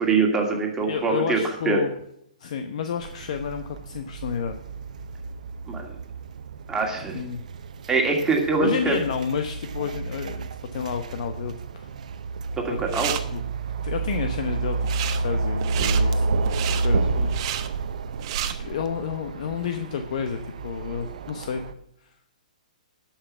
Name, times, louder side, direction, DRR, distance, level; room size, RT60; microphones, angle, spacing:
voice 1, 0.0-1.8 5.7-5.9 6.7-7.2 7.9-9.0 12.5-13.1 17.2-17.3, right 4 dB, 10° right, 1 dB, 2.4 m, -24 dB
voice 2, 0.8-1.9 2.4-4.6 7.1-7.4 8.6-11.9 13.3-13.4 13.8-16.3 16.6-17.5 18.4-21.6 22.0-22.1, left 7 dB, 55° left, 6 dB, 1.0 m, -30 dB
sound 1, 3.0-21.7, right 3 dB, 65° right, 0.8 m, -30 dB
sound 2, 12.6-13.2 14.7-15.2 15.6-18.5, right 11 dB, 40° right, 1.0 m, -31 dB
13.0 x 5.8 x 7.1 m, 0.74 s
hypercardioid pair, 130°, 4 cm